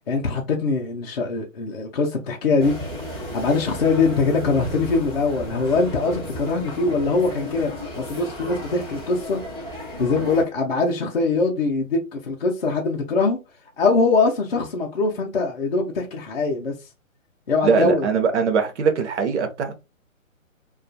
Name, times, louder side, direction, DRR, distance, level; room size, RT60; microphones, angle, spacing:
voice 1, 0.1-2.7 3.3-7.7 8.1-9.4 10.0-13.4 13.8-16.7 17.5-18.1, left 3 dB, 45° left, 0.5 m, -22 dB
sound 1, 2.6-10.4, left 1 dB, 20° right, 0.5 m, -34 dB
voice 2, 17.6-19.8, right 5 dB, 60° right, 0.6 m, -21 dB
2.3 x 2.3 x 2.5 m
hypercardioid pair, 160°, 41 cm